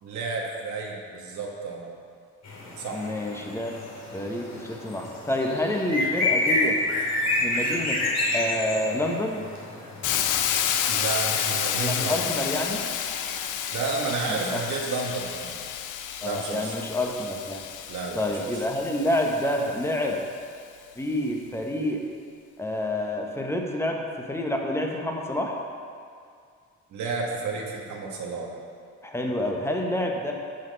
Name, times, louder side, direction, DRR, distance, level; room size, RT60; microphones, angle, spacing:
voice 1, 0.0-1.9 2.8-3.0 10.9-12.6 13.7-15.6 16.2-16.7 17.9-18.6 26.9-28.5, right 4 dB, 75° right, -1 dB, 1.4 m, -31 dB
sound 1, 2.4-11.7, left 2 dB, 60° left, 2.5 m, -29 dB
voice 2, 2.9-3.8 4.1-6.8 7.4-8.0 8.3-9.4 11.8-12.8 14.3-14.6 16.2-17.6 18.1-20.2 21.0-22.0 22.6-25.6 29.0-30.3, left 1 dB, 10° left, 1 dB, 1.2 m, -28 dB
Hiss, 10.0-19.9, left 9 dB, 85° left, 0.6 m, -30 dB
11.5 x 6.0 x 4.0 m, 2.2 s
cardioid pair, 90°, 30 cm